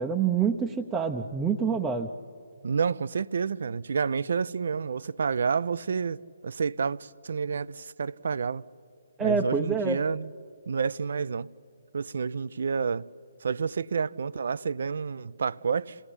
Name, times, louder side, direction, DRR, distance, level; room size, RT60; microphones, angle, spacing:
voice 1, 0.0-2.1 9.2-10.0, right 6 dB, 10° right, 0.8 m, -26 dB
voice 2, 2.6-8.6 9.2-10.3 10.7-11.5 11.9-13.1 13.4-16.0, right 5 dB, 60° right, 0.5 m, -29 dB
29.0 x 17.5 x 9.9 m
figure-of-eight pair, 140°, 0 cm